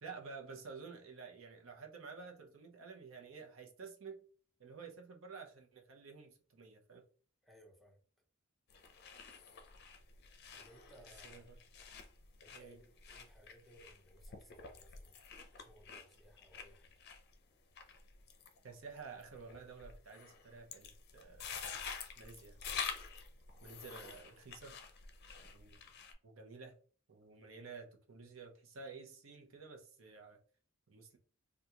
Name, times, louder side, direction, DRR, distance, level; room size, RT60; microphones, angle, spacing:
voice 1, 0.0-4.2 4.6-7.0 11.0-11.6 12.5-12.8 18.6-21.4 22.2-22.6 23.6-24.8 25.4-25.8 26.2-26.8 27.1-30.4 30.9-31.2, right 5 dB, 70° right, 2 dB, 0.7 m, -51 dB
voice 2, 7.4-8.0 10.5-11.5 12.4-15.1 15.5-16.9 23.6-23.9, equal, ahead, 0 dB, 0.7 m, -63 dB
sound 1, 8.7-26.1, left 6 dB, 50° left, 0.5 m, -49 dB
3.6 x 2.3 x 2.8 m, 0.42 s
head